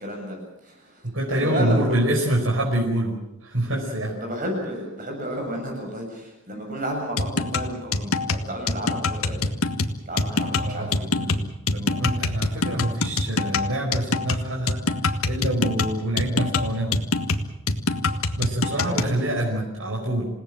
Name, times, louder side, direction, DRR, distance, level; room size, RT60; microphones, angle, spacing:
voice 1, 0.0-2.0 4.1-9.5 10.1-11.1 18.8-19.3, equal, 40° right, 1 dB, 7.7 m, -32 dB
voice 2, 1.0-3.1 3.4-4.1 10.6-11.4 11.7-14.8 15.2-17.0 18.4-20.3, right 1 dB, 70° right, -2 dB, 5.1 m, -26 dB
sound 1, 7.2-19.2, left 3 dB, 85° left, 1.7 m, -25 dB
28.0 x 18.0 x 7.6 m, 0.83 s
head